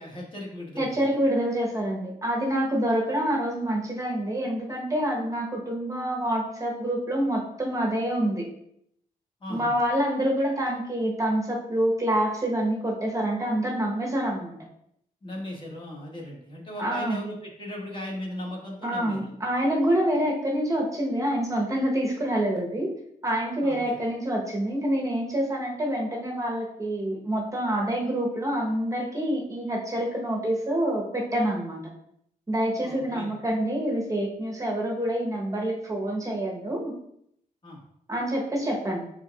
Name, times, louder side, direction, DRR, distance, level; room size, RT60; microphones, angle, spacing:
voice 1, 0.0-1.0 9.4-9.7 15.2-19.4 23.6-24.0 32.8-33.3 37.6-37.8, left 1 dB, 35° left, -3 dB, 1.5 m, -37 dB
voice 2, 0.8-8.5 9.5-14.5 16.8-17.2 18.8-22.9 23.2-31.8 32.5-36.9 38.1-39.0, right 1 dB, 20° right, -1 dB, 0.9 m, -27 dB
4.6 x 4.5 x 2.3 m, 0.72 s
cardioid pair, 90°, 15 cm